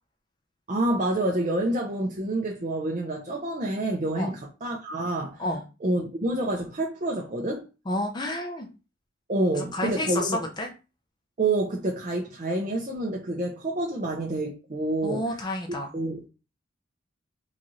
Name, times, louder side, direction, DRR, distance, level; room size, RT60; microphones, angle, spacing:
voice 1, 0.7-5.4 5.8-7.6 9.3-10.4 11.4-15.3 15.9-16.3, right 1 dB, 40° right, 0.6 m, -28 dB
voice 2, 7.9-8.7 9.5-10.7 15.0-15.9, left 1 dB, 20° left, 0.5 m, -30 dB
4.0 x 2.5 x 3.0 m
head